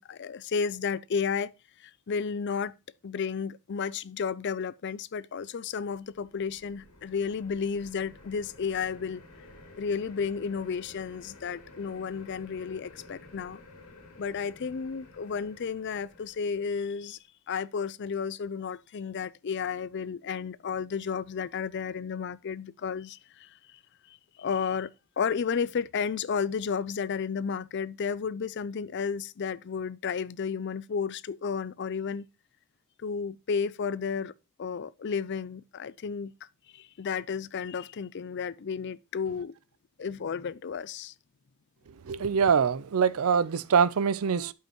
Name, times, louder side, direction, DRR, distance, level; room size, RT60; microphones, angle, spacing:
voice 1, 0.0-1.5 1.8-2.8 3.0-9.2 9.8-13.6 14.2-17.2 17.5-23.5 24.1-24.9 25.2-32.3 33.0-34.3 34.6-36.3 36.7-39.6 40.0-41.1, left 6 dB, 50° left, 0.4 m, -32 dB
sound 1, 5.7-17.1, left 2 dB, 80° left, 2.4 m, -52 dB
voice 2, 42.0-44.5, right 6 dB, 70° right, 0.5 m, -24 dB
12.0 x 5.5 x 3.0 m
head